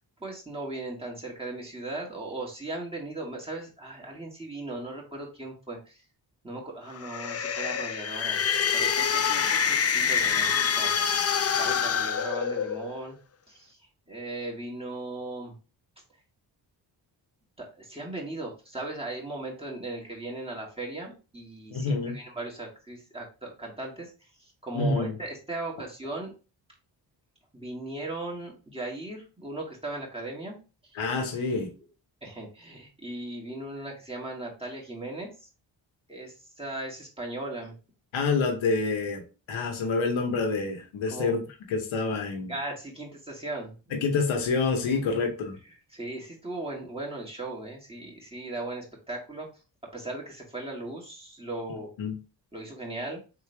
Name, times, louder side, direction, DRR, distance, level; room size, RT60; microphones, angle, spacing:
voice 1, 0.2-6.0 6.4-8.4 8.7-10.9 11.6-13.2 13.5-13.8 14.1-15.5 17.6-24.1 24.4-26.3 27.5-30.6 32.2-35.5 36.1-37.8 41.1-41.3 42.5-43.7 44.9-45.0 45.9-49.5 49.9-51.9 52.5-53.2, right 2 dB, 10° right, -3 dB, 2.1 m, -37 dB
sound 1, 6.9-13.0, left 7 dB, 35° left, 0.5 m, -26 dB
voice 2, 21.7-22.2 24.7-25.1 30.9-31.7 38.1-39.2 39.5-41.4 41.7-42.5 43.9-45.6 52.0-52.1, left 4 dB, 85° left, 3 dB, 1.0 m, -27 dB
3.7 x 3.3 x 3.4 m, 0.33 s
cardioid pair, 50°, 46 cm